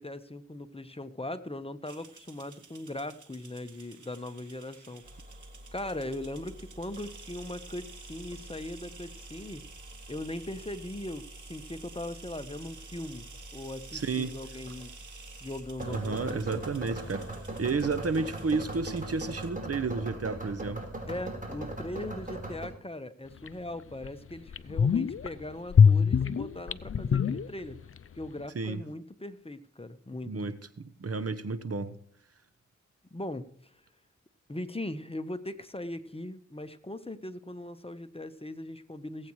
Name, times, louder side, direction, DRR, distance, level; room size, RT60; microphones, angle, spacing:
voice 1, 0.0-5.0 5.7-9.7 10.1-13.3 13.5-14.9 15.4-16.6 21.1-27.9 28.1-30.3 33.1-33.7 34.5-39.3, left 1 dB, 20° left, 1.1 m, -39 dB
sound 1, 1.9-19.5, right 5 dB, 85° right, 1.7 m, -52 dB
sound 2, 5.0-22.7, right 1 dB, 25° right, 4.2 m, -42 dB
voice 2, 13.9-14.3 15.8-17.3 17.6-20.8 28.5-28.8 30.2-31.9, right 4 dB, 55° right, 1.0 m, -31 dB
sound 3, 23.5-23.6 24.0-24.1 24.5-25.3 25.7-28.0 28.2-28.3, left 6 dB, 45° left, 0.5 m, -23 dB
19.0 x 8.6 x 3.2 m
cardioid pair, 45°, 29 cm